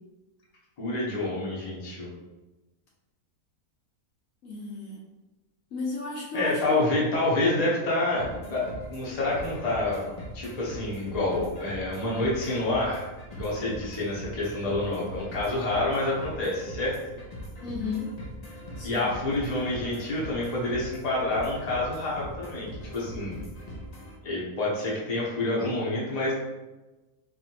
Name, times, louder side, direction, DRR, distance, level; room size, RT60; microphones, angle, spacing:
voice 1, 0.8-2.1 6.3-10.1 10.3-16.9 18.8-23.4 24.2-26.3, left 2 dB, 30° left, -5 dB, 0.9 m, -28 dB
voice 2, 4.4-5.0 5.7-6.9 17.6-18.1 18.8-19.1, left 3 dB, 65° left, -4 dB, 1.2 m, -33 dB
sound 1, 8.2-24.2, equal, 85° left, 0.3 m, -41 dB
4.1 x 2.7 x 2.9 m, 1.1 s
omnidirectional pair, 1.6 m